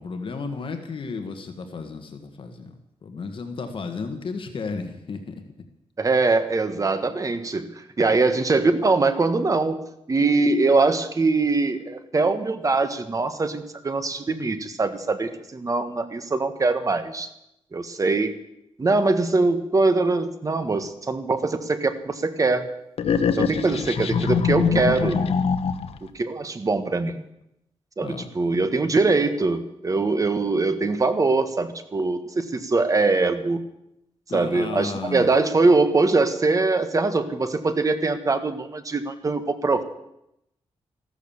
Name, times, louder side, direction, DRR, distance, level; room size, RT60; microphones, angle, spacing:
voice 1, 0.0-5.3 23.6-23.9 28.0-28.3 34.3-35.3, left 4 dB, 55° left, 6 dB, 1.7 m, -33 dB
voice 2, 6.0-9.8 10.1-17.3 17.7-18.4 18.8-22.7 23.4-25.2 26.1-27.2 28.0-33.6 34.3-39.8, right 3 dB, 35° right, 10 dB, 1.5 m, -22 dB
sound 1, 23.0-26.1, left 6 dB, 75° left, 1.1 m, -23 dB
14.5 x 13.0 x 7.2 m, 0.83 s
wide cardioid pair, 110°, 10 cm